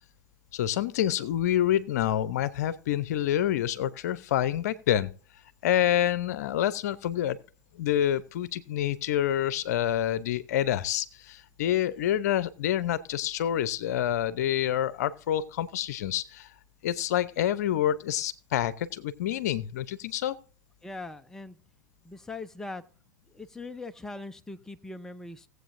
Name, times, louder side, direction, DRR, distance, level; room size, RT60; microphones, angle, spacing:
voice 1, 0.5-5.1 5.6-7.4 7.8-16.5 16.8-20.4, left 11 dB, 65° left, 17 dB, 0.7 m, -27 dB
voice 2, 20.8-21.6 22.0-22.8 23.3-25.5, left 2 dB, 5° left, 8 dB, 0.6 m, -41 dB
18.5 x 7.9 x 2.6 m, 0.39 s
hypercardioid pair, 95°, 10 cm